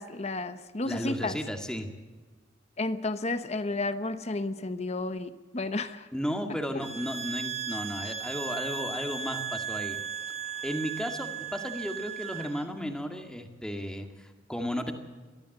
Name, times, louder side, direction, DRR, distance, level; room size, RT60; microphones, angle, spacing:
voice 1, 0.0-1.4 2.8-6.1 6.5-6.6, left 2 dB, 35° left, 11 dB, 1.0 m, -32 dB
voice 2, 0.8-1.9 6.1-10.0 10.6-14.9, equal, 5° left, 5 dB, 2.2 m, -34 dB
sound 1, 6.8-12.7, right 7 dB, 35° right, 1.4 m, -36 dB
22.5 x 15.0 x 7.9 m, 1.3 s
head